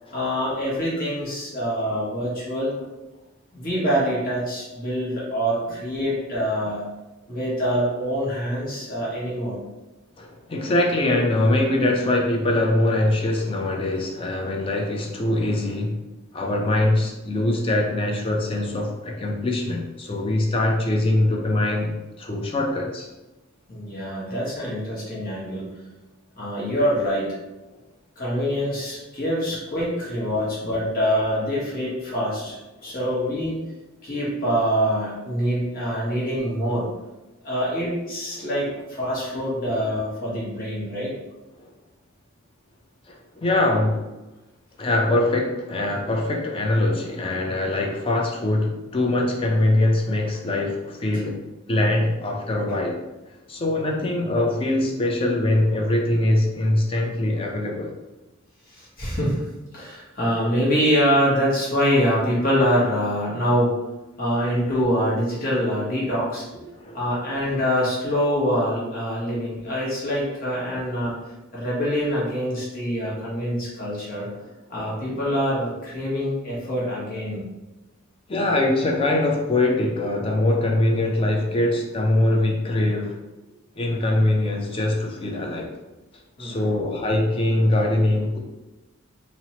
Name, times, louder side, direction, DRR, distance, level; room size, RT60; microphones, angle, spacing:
voice 1, 0.1-2.7 3.5-6.9 7.3-9.6 23.7-25.7 26.3-27.3 28.2-32.6 32.8-33.6 34.0-36.9 37.4-41.1 58.7-59.5 59.7-63.7 64.2-66.6 66.9-74.3 74.7-77.4 86.4-86.8, equal, 45° left, -6 dB, 0.8 m, -25 dB
voice 2, 10.2-16.0 16.3-23.1 26.7-26.8 32.9-33.0 37.8-37.9 38.4-38.5 43.1-44.0 44.8-51.4 51.7-53.0 53.5-57.9 66.7-67.0 69.3-69.4 78.3-83.2 83.8-85.7 86.4-88.4, left 1 dB, 25° left, 0 dB, 0.4 m, -23 dB
2.9 x 2.0 x 2.8 m, 1.1 s
head